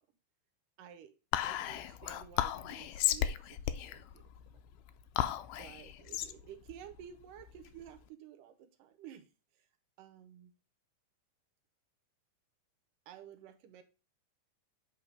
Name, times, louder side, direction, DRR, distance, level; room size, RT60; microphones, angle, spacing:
voice 1, 0.8-4.2 4.5-4.6 5.6-9.7 10.0-10.5 13.1-13.8, right 10 dB, 80° right, 8 dB, 2.4 m, -53 dB
Whispering, 1.3-8.0, left 12 dB, 80° left, 1.9 m, -35 dB
8.7 x 3.4 x 5.1 m, 0.33 s
omnidirectional pair, 3.9 m